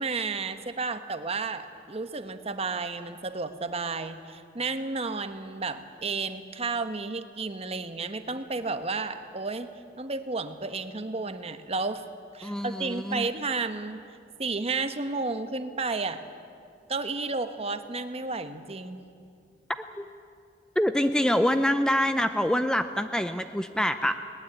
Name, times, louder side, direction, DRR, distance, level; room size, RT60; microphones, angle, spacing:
voice 1, 0.0-9.7 10.0-12.0 12.3-14.0 14.4-16.2 16.9-19.0, right 3 dB, 35° right, 9 dB, 1.1 m, -32 dB
voice 2, 12.4-13.3 20.0-20.1 20.8-24.2, equal, 5° left, 9 dB, 0.5 m, -25 dB
20.5 x 19.0 x 8.6 m, 2.3 s
head